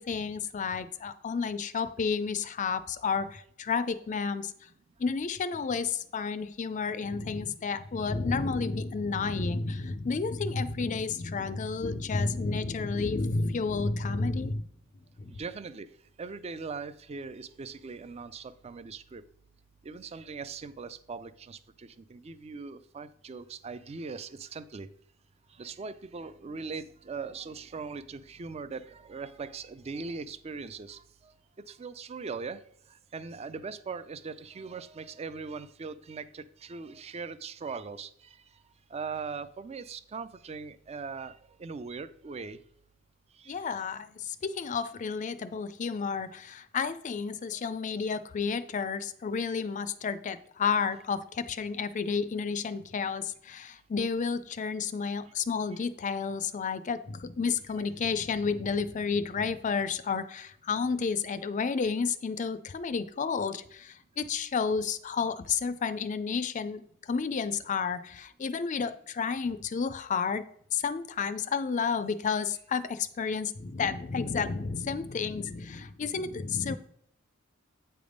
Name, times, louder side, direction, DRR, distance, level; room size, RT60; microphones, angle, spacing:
voice 1, 0.0-4.5 5.0-14.7 15.2-15.3 43.5-70.4 70.7-76.8, left 5 dB, 40° left, 0.4 m, -31 dB
voice 2, 15.3-15.9 16.2-19.2 19.8-24.9 25.6-31.3 31.7-32.6 33.1-38.1 38.9-42.6 43.4-43.9, right 4 dB, 30° right, 0.4 m, -40 dB
8.5 x 3.4 x 5.1 m
head